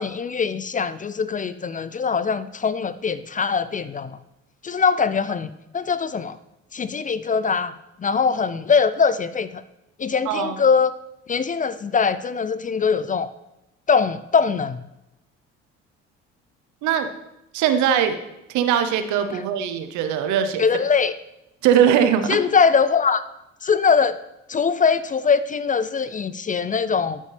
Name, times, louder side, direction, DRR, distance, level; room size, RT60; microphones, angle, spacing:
voice 1, 0.0-4.2 4.6-5.5 5.7-6.4 6.7-7.7 8.0-9.6 10.0-10.9 11.3-13.3 13.9-14.8 20.6-21.1 22.3-23.2 23.6-24.2 24.5-27.2, left 5 dB, 25° left, 15 dB, 0.5 m, -22 dB
voice 2, 10.3-10.6 16.8-17.1 17.5-18.2 18.5-20.7 21.6-22.4, right 9 dB, 70° right, 10 dB, 0.8 m, -20 dB
12.5 x 5.3 x 3.3 m, 0.87 s
hypercardioid pair, 55°, 31 cm